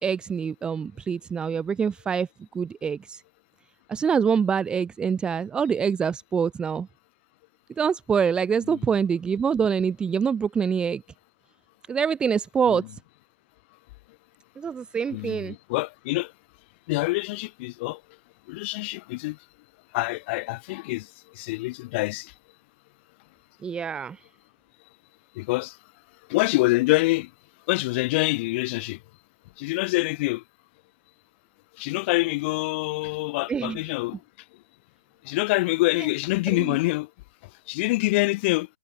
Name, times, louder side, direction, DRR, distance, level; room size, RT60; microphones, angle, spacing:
voice 1, 0.0-2.3 2.5-3.2 3.9-6.9 7.8-11.0 11.9-12.8 14.6-15.5 23.6-24.2 33.5-33.8 36.7-36.8, right 6 dB, 5° right, 1.2 m, -25 dB
voice 2, 15.1-16.3 16.9-18.0 18.5-19.4 19.9-21.1 21.3-22.3 25.3-25.8 26.3-27.3 27.7-29.0 29.6-30.4 31.8-34.2 35.2-37.1 37.7-38.7, left 22 dB, 25° left, 6.9 m, -26 dB
figure-of-eight pair, 150°, 16 cm